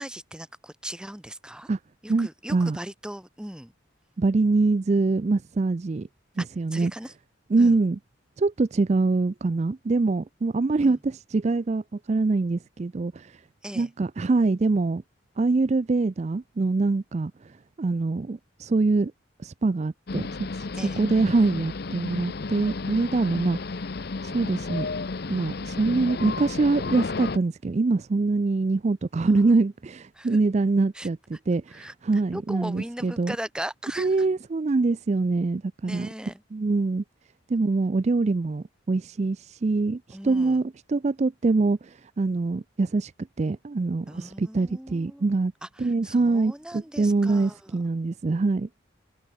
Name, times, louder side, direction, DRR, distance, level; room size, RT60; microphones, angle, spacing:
voice 1, 0.0-1.7 2.0-3.7 6.7-7.1 7.6-7.8 10.8-11.0 13.6-13.9 20.8-21.0 29.3-29.4 30.1-30.4 30.9-31.1 31.7-34.2 35.8-36.4 40.1-40.6 44.1-45.3 45.6-47.8, right 1 dB, 5° right, 0.8 m, -39 dB
voice 2, 2.1-2.8 4.2-6.1 6.4-6.9 7.5-8.0 8.4-13.3 13.8-15.0 15.4-17.3 17.8-19.1 19.4-20.3 21.0-23.6 24.2-24.9 25.3-31.2 31.5-33.3 34.0-36.1 36.5-37.0 37.5-43.1 43.4-45.5 45.8-48.7, right 3 dB, 35° right, 0.4 m, -24 dB
sound 1, 20.1-27.4, left 3 dB, 50° left, 0.6 m, -33 dB
head